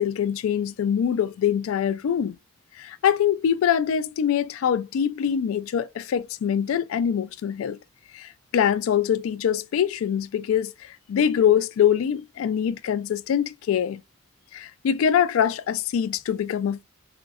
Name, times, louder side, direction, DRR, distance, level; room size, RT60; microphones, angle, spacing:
voice 1, 0.0-2.4 2.8-7.8 8.1-14.0 14.5-16.8, left 8 dB, 90° left, 0.3 m, -24 dB
3.6 x 2.0 x 2.3 m
head